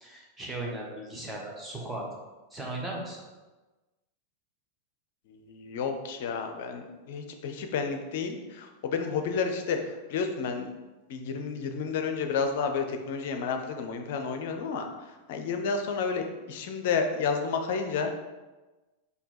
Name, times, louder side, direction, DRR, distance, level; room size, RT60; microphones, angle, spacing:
voice 1, 0.0-2.0 2.5-3.2, right 2 dB, 10° right, -3 dB, 1.1 m, -37 dB
voice 2, 5.3-10.7 11.1-14.9 15.3-18.1, left 5 dB, 50° left, 5 dB, 0.5 m, -31 dB
4.3 x 2.7 x 4.2 m, 1.2 s
figure-of-eight pair, 90°, 0 cm